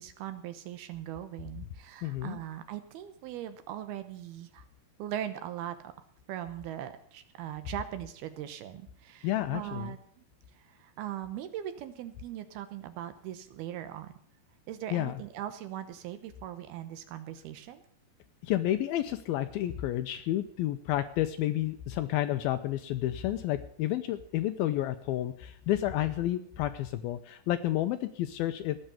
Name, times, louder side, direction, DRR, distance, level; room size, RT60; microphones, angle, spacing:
voice 1, 0.0-4.7 5.0-5.9 6.3-10.2 10.6-14.1 14.7-17.8, right 11 dB, 75° right, 11 dB, 2.8 m, -40 dB
voice 2, 2.0-2.4 9.2-9.9 14.9-15.1 18.4-28.8, left 13 dB, 80° left, 10 dB, 2.3 m, -30 dB
17.0 x 6.7 x 8.9 m, 0.63 s
omnidirectional pair, 4.8 m